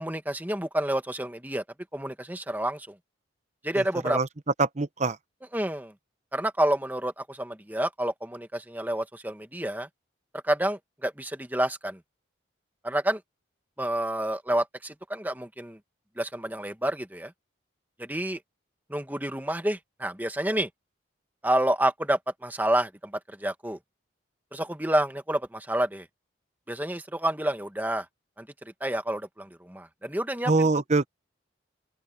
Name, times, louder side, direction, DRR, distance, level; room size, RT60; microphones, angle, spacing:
voice 1, 0.0-1.6 1.9-2.9 3.6-4.2 5.5-5.9 6.3-9.9 10.4-12.0 12.8-13.2 13.8-15.8 16.2-17.3 18.0-18.4 18.9-20.7 21.4-23.8 24.5-26.1 26.7-28.0 28.4-28.5 28.8-30.7, right 1 dB, 10° right, 1.6 m, -29 dB
voice 2, 3.8-4.3 4.6-5.2 30.5-31.1, right 3 dB, 35° right, 0.9 m, -24 dB
open air
head